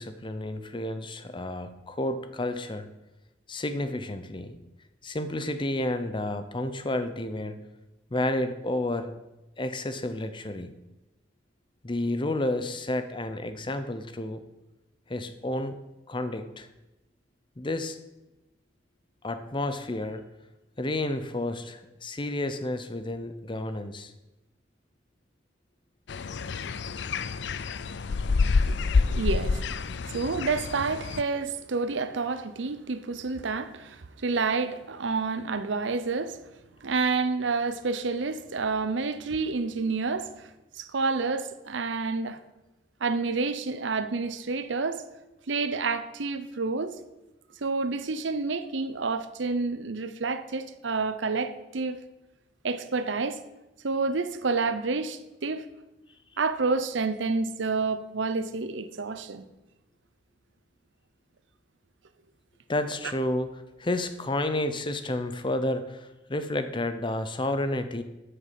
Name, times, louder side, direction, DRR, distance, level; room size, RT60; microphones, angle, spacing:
voice 1, 0.0-2.9 3.5-4.6 5.0-7.6 8.1-9.1 9.6-10.7 11.8-14.4 15.1-15.8 16.1-16.7 17.6-18.0 19.2-20.2 20.8-24.1 62.7-68.0, left 1 dB, 25° left, 0.7 m, -31 dB
sound 1, 26.1-31.2, left 4 dB, 65° left, 0.5 m, -27 dB
voice 2, 28.7-29.6 30.1-36.4 36.8-40.5 40.8-42.4 43.0-45.0 45.5-47.0 47.6-52.0 52.6-53.4 53.8-55.6 56.4-59.5, right 4 dB, 80° right, 0.7 m, -29 dB
9.3 x 6.8 x 7.5 m
head